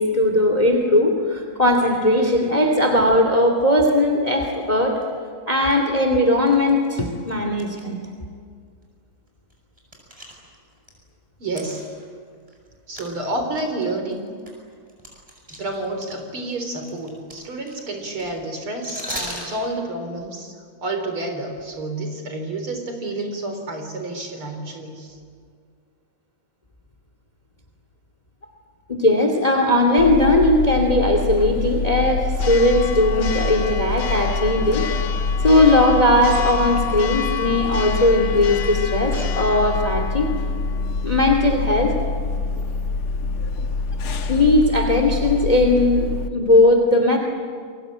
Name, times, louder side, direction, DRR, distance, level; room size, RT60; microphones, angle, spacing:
voice 1, 0.0-5.0 5.5-8.0 28.9-34.8 35.4-40.3 41.0-41.9 44.3-47.2, left 1 dB, 20° left, 4 dB, 2.4 m, -18 dB
sound 1, 3.8-3.9 4.3-4.6 5.0-5.1 5.6-5.7 6.5-7.8 8.1-8.2 8.8-8.9 9.3-10.9 11.5-12.7 13.0-13.1 13.5-16.1 16.4-19.6, equal, 15° right, 7.0 m, -37 dB
voice 2, 11.4-11.8 12.9-14.3 15.5-20.5 20.8-25.2, right 2 dB, 85° right, 5 dB, 5.0 m, -29 dB
Church bell, 30.0-46.3, left 4 dB, 85° left, 2.2 m, -25 dB
29.5 x 22.5 x 9.0 m, 2.1 s
omnidirectional pair, 2.3 m